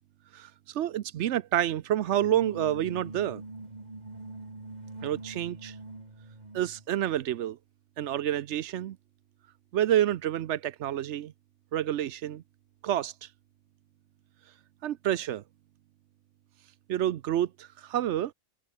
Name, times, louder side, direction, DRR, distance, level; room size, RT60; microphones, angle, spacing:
voice 1, 0.3-3.4 5.0-5.7 6.5-7.6 8.0-9.0 9.7-11.3 11.7-12.4 12.8-13.1 14.8-15.4 16.9-18.3, right 11 dB, 60° right, 0.8 m, -28 dB
sound 1, 2.1-6.9, right 2 dB, 25° right, 2.6 m, -43 dB
omnidirectional pair, 1.6 m